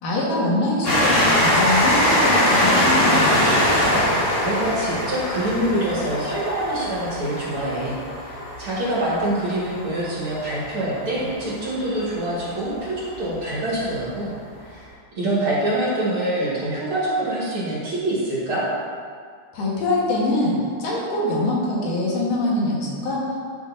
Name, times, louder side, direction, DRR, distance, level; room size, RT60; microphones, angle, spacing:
voice 1, 0.0-3.5 19.5-23.4, left 2 dB, 85° left, -5 dB, 3.3 m, -23 dB
Train, 0.8-12.0 12.7-12.8 13.1-13.2, left 1 dB, 35° left, 1.3 m, -22 dB
voice 2, 4.4-8.0 8.2-14.3 14.6-14.9 15.2-18.7, right 1 dB, 45° right, -8 dB, 2.6 m, -25 dB
13.0 x 6.4 x 2.8 m, 2.1 s
omnidirectional pair, 3.6 m